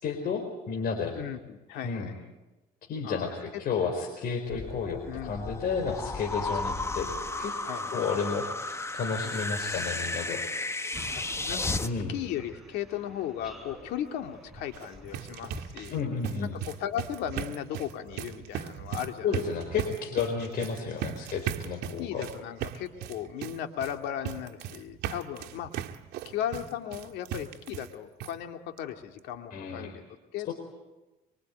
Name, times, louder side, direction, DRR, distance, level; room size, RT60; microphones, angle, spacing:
voice 1, 0.0-1.1 1.8-2.1 2.9-7.5 7.9-10.4 11.8-12.1 15.9-16.5 19.2-22.2 29.5-29.9 30.4-30.5, left 5 dB, 60° left, 2 dB, 4.5 m, -32 dB
voice 2, 1.1-2.1 3.0-3.3 5.1-5.8 7.6-8.0 9.2-9.6 10.9-11.8 12.1-16.0 16.4-19.3 20.8-21.3 22.0-25.8 26.2-30.0 30.3-30.5, left 10 dB, 85° left, 6 dB, 2.5 m, -37 dB
sound 1, 4.5-11.9, left 2 dB, 15° left, 1.2 m, -33 dB
sound 2, 10.9-15.9, equal, ahead, 5.1 m, -47 dB
sound 3, 14.6-27.9 28.2-28.3 28.8-28.9 29.2-29.3, right 10 dB, 85° right, 1.6 m, -38 dB
24.5 x 24.5 x 9.3 m, 1.1 s
cardioid pair, 110°, 17 cm